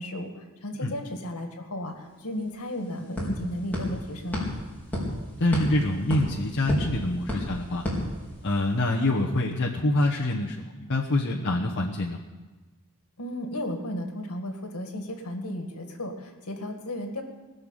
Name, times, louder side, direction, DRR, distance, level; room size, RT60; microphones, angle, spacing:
voice 1, 0.0-4.5 13.2-17.2, left 1 dB, 75° left, 4 dB, 2.0 m, -34 dB
sound 1, 2.0-2.1 2.4-8.8, left 1 dB, 10° left, 4.3 m, -33 dB
voice 2, 5.4-7.8 8.4-12.2, left 1 dB, 55° left, -2 dB, 1.2 m, -25 dB
20.5 x 6.9 x 9.0 m, 1.2 s
head